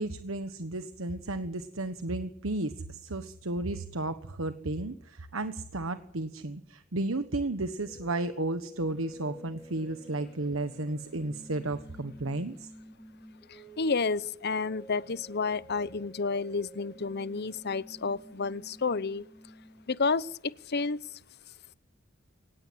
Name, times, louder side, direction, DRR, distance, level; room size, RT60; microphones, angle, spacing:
voice 1, 0.0-12.7, right 2 dB, 80° right, 1.3 m, -33 dB
sound 1, 7.9-19.9, equal, ahead, 5.3 m, -51 dB
voice 2, 13.5-19.2 19.9-21.0, left 4 dB, 55° left, 0.9 m, -30 dB
24.0 x 19.0 x 8.0 m
head